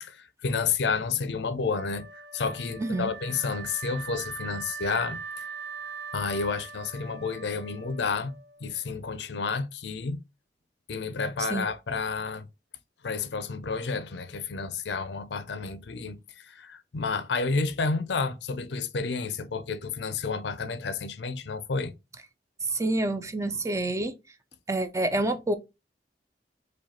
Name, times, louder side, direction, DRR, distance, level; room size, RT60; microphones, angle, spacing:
voice 1, 0.0-5.5 6.1-8.3 8.6-10.2 10.9-12.4 13.0-21.9, left 4 dB, 80° left, 0.6 m, -30 dB
Wind instrument woodwind instrument, 1.7-8.7, right 5 dB, 65° right, 1.0 m, -41 dB
voice 2, 2.8-3.1 11.4-11.7 22.6-24.1 24.7-25.6, right 2 dB, 15° right, 0.4 m, -28 dB
4.9 x 2.4 x 4.2 m
head